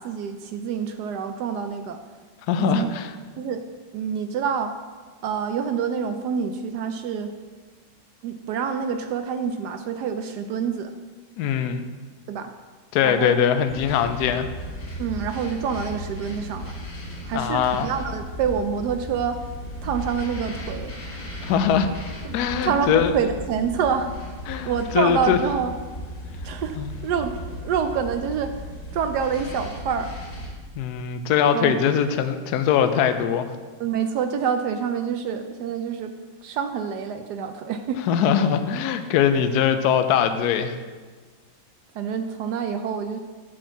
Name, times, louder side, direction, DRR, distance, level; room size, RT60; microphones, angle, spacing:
voice 1, 0.0-2.0 2.6-2.9 3.3-3.6 3.9-4.7 5.2-7.3 8.2-10.9 12.3-12.5 13.0-13.4 15.0-16.7 17.2-19.4 19.8-20.9 22.2-25.7 26.4-26.8 27.0-28.6 28.9-30.1 31.5-31.7 33.8-36.1 36.4-38.0 41.9-43.2, right 7 dB, 75° right, 8 dB, 1.0 m, -27 dB
voice 2, 2.5-3.1 11.4-11.8 12.9-14.5 17.3-17.9 21.4-21.9 22.3-23.1 24.5-25.4 26.8-26.9 30.8-33.5 38.1-40.8, left 8 dB, 70° left, 9 dB, 1.0 m, -21 dB
sound 1, 13.7-30.5, left 1 dB, 45° left, 2.1 m, -36 dB
9.0 x 4.3 x 7.1 m, 1.4 s
omnidirectional pair, 2.1 m